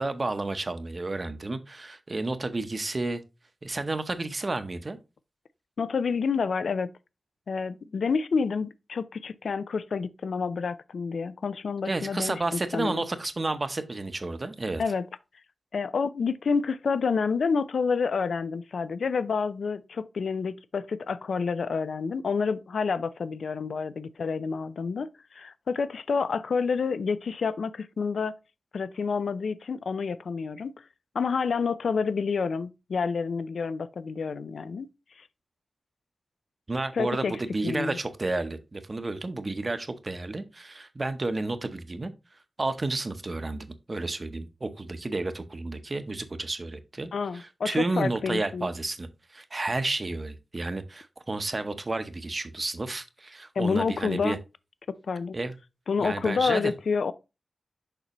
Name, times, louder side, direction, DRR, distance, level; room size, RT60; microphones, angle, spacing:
voice 1, 0.0-3.2 3.6-5.0 11.8-14.8 36.7-42.1 42.6-54.4 55.3-55.5 56.0-56.7, right 2 dB, 30° right, 0.7 m, -31 dB
voice 2, 5.8-6.9 7.5-13.0 14.8-15.1 15.7-28.4 28.7-30.7 31.1-34.9 35.2-35.3 36.9-37.4 37.6-38.0 47.1-48.7 53.6-54.4 54.9-55.4 55.9-57.1, left 5 dB, 80° left, 0.4 m, -28 dB
6.7 x 6.0 x 3.0 m
wide cardioid pair, 145°, 0 cm